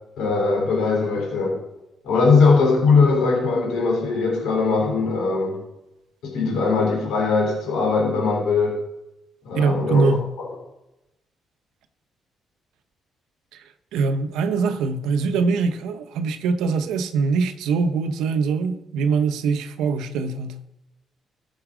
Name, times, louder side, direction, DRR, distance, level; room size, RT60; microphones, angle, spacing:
voice 1, 0.2-1.6 2.0-5.6 6.2-8.8 9.5-10.2, left 4 dB, 85° left, 3.8 m, -20 dB
voice 2, 9.5-10.3 13.9-20.6, right 4 dB, 90° right, 0.8 m, -23 dB
14.0 x 7.2 x 5.0 m
cardioid pair, 90°, 0 cm